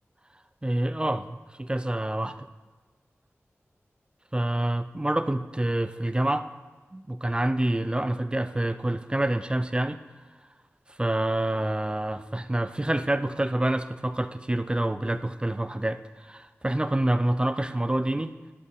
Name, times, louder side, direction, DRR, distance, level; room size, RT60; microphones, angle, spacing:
voice 1, 0.6-2.5 4.3-6.5 6.9-10.0 10.9-18.3, right 1 dB, 20° right, 12 dB, 0.5 m, -27 dB
10.5 x 6.4 x 6.9 m, 1.3 s
wide cardioid pair, 65°, 5 cm